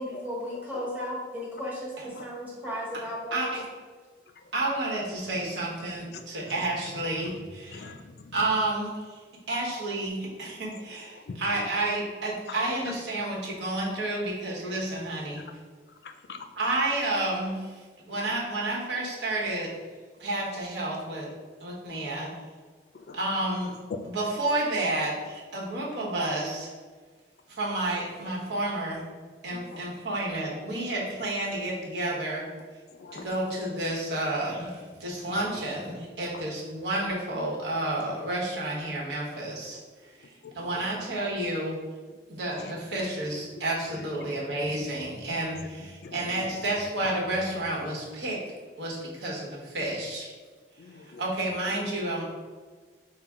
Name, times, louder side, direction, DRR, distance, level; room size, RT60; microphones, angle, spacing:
voice 1, 0.0-3.5, equal, 10° right, -5 dB, 1.0 m, -35 dB
voice 2, 4.5-7.9 8.3-9.2 9.5-15.4 16.6-19.7 20.2-21.3 21.6-22.3 23.1-23.7 24.0-26.7 27.5-29.0 29.4-32.5 33.1-40.1 40.5-41.8 42.3-48.4 48.8-50.3 51.2-52.2, right 2 dB, 75° right, -4 dB, 1.1 m, -30 dB
voice 3, 7.7-8.3 11.3-11.4 16.0-16.4 23.1-23.2 23.9-24.0 29.5-29.8 32.9-33.3 35.2-35.4 40.4-41.0 42.6-42.7 46.0-46.6 50.8-51.2, left 4 dB, 60° left, 6 dB, 0.4 m, -42 dB
5.6 x 2.1 x 3.6 m, 1.5 s
head